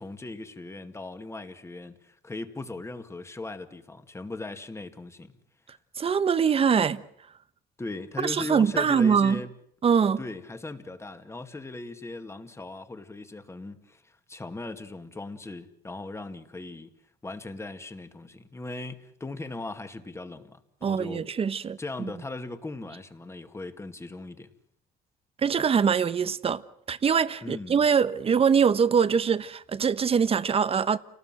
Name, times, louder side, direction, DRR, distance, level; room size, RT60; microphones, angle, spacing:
voice 1, 0.0-5.3 7.8-9.5 10.2-16.9 17.2-21.3 21.8-24.5 27.4-27.8, left 2 dB, 15° left, 2.2 m, -38 dB
voice 2, 6.0-7.0 8.2-9.4 9.8-10.2 20.8-22.1 25.4-26.6 26.9-31.0, right 6 dB, 35° right, 1.2 m, -23 dB
29.0 x 19.5 x 7.8 m
cardioid pair, 110°, 17 cm